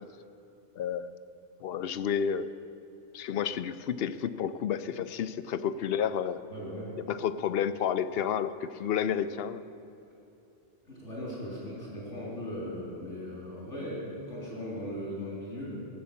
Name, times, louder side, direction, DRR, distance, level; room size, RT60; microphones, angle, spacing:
voice 1, 0.8-1.1 1.6-2.5 3.1-6.4 7.1-9.6, left 8 dB, 65° left, 13 dB, 0.7 m, -30 dB
voice 2, 6.5-7.0 10.9-15.8, equal, 90° left, -6 dB, 4.3 m, -38 dB
17.5 x 8.6 x 7.0 m, 2.8 s
omnidirectional pair, 1.2 m